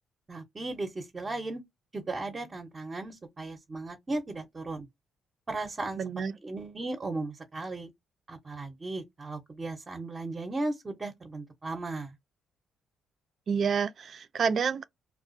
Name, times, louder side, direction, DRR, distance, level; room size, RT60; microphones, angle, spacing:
voice 1, 0.3-1.6 1.9-4.9 5.5-6.0 6.4-7.9 8.3-12.1, right 2 dB, 30° right, 0.7 m, -36 dB
voice 2, 6.0-6.3 13.5-14.8, right 6 dB, 50° right, 0.4 m, -28 dB
2.3 x 2.2 x 2.6 m
cardioid pair, 90°, 0 cm